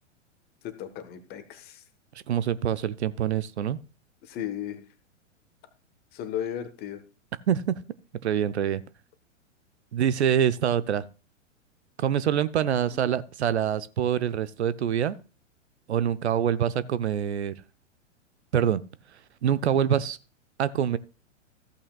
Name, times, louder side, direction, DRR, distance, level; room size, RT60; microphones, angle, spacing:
voice 1, 0.6-1.8 4.2-4.8 6.1-7.0, left 10 dB, 25° left, 11 dB, 1.1 m, -35 dB
voice 2, 2.3-3.8 7.5-7.8 8.2-8.8 9.9-11.1 12.0-15.2 15.9-17.5 18.5-18.8 19.1-20.2 20.6-21.0, right 9 dB, 60° right, 16 dB, 0.6 m, -25 dB
14.5 x 8.5 x 2.3 m, 0.31 s
figure-of-eight pair, 105°, 38 cm